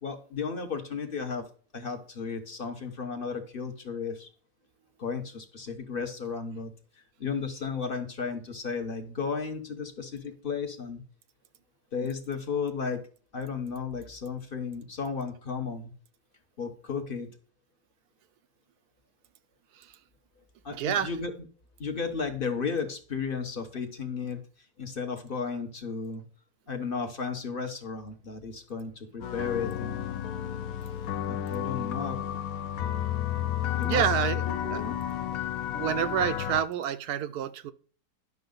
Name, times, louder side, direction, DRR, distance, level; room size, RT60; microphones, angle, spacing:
voice 1, 0.0-1.4 1.7-4.3 5.0-6.7 7.2-11.0 11.9-13.0 13.3-15.9 16.6-17.3 20.6-21.3 21.8-24.4 24.8-26.2 26.7-30.0 31.3-32.4 33.7-34.0 34.4-35.0, left 5 dB, 40° left, 1.0 m, -34 dB
voice 2, 20.7-21.1 33.8-34.4 34.7-34.8 35.7-37.7, right 10 dB, 75° right, 1.0 m, -28 dB
sound 1, 29.2-36.6, left 11 dB, 65° left, 1.0 m, -31 dB
10.5 x 6.2 x 3.9 m
omnidirectional pair, 1.8 m